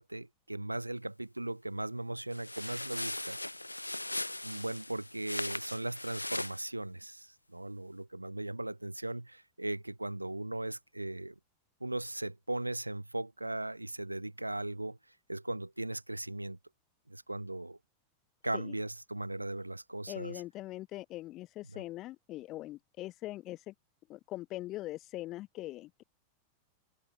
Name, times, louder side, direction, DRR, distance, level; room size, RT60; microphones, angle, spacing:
voice 1, 0.0-3.4 4.4-11.3 11.8-15.0 15.3-16.6 17.1-17.8 18.4-20.4 21.7-21.8, right 1 dB, 85° right, 0.9 m, -38 dB
sound 1, 2.3-6.6, left 1 dB, 85° left, 0.8 m, -39 dB
voice 2, 20.1-23.7 24.1-26.0, left 16 dB, 35° left, 1.0 m, -42 dB
figure-of-eight pair, 90°, 0 cm